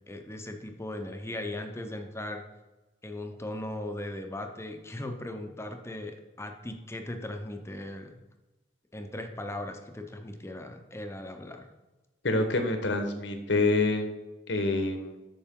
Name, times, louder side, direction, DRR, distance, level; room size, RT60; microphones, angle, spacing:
voice 1, 0.1-2.4 3.0-8.2 8.9-11.7, left 1 dB, 15° left, 5 dB, 0.7 m, -38 dB
voice 2, 12.2-14.1 14.5-15.2, left 2 dB, 75° left, 6 dB, 1.2 m, -26 dB
9.0 x 6.2 x 3.7 m, 1.1 s
head